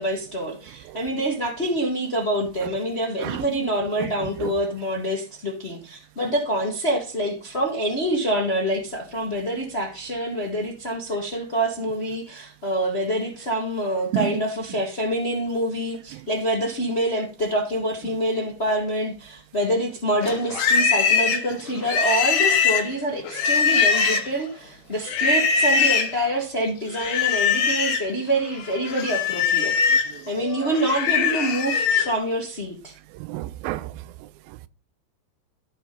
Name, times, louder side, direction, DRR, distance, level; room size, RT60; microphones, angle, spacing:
voice 1, 0.0-32.9, right 1 dB, 40° left, 0.8 m, -26 dB
voice 2, 4.2-4.5 14.1-14.4 30.1-30.2 33.2-33.9, right 16 dB, 85° right, 2.4 m, -30 dB
Livestock farm animals working animals, 20.2-24.5 25.0-26.2 26.9-28.1 28.5-32.1, left 5 dB, 70° left, 2.5 m, -22 dB
14.0 x 4.9 x 5.2 m
omnidirectional pair, 4.2 m